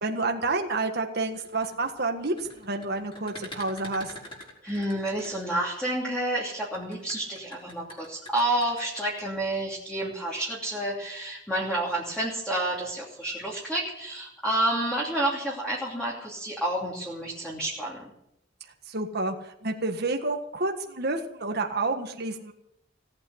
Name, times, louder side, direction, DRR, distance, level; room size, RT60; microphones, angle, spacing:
voice 1, 0.0-4.1 18.9-22.5, right 3 dB, 55° right, 3 dB, 1.7 m, -29 dB
sound 1, 1.2-5.9 6.6-9.2, left 1 dB, 25° left, 5.5 m, -45 dB
voice 2, 4.6-18.1, right 1 dB, 5° left, -5 dB, 2.9 m, -29 dB
18.0 x 8.8 x 8.0 m, 0.79 s
head